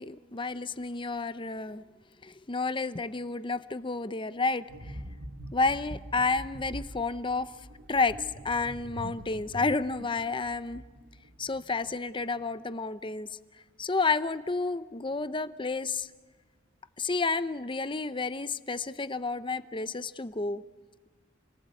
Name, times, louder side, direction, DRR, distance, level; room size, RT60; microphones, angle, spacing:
voice 1, 0.0-1.8 2.2-5.0 5.5-7.5 7.9-10.8 11.4-13.3 13.8-16.1 17.0-20.6, left 3 dB, 25° left, 13 dB, 0.7 m, -30 dB
sound 1, 4.7-12.1 12.3-12.6, right 1 dB, 75° right, 1.9 m, -44 dB
28.5 x 19.5 x 8.4 m, 1.4 s
head